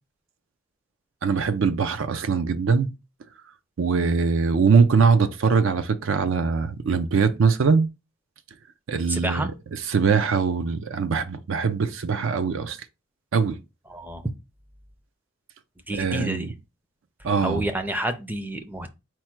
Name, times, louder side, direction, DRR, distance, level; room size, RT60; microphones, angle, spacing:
voice 1, 1.2-2.9 3.8-7.9 8.9-12.8 13.3-13.6 15.9-16.5 17.2-17.7, right 5 dB, 70° right, 0.4 m, -22 dB
voice 2, 9.1-9.5 13.9-14.2 15.9-16.5 17.4-18.9, right 1 dB, 10° right, 0.4 m, -29 dB
4.5 x 2.1 x 4.4 m
head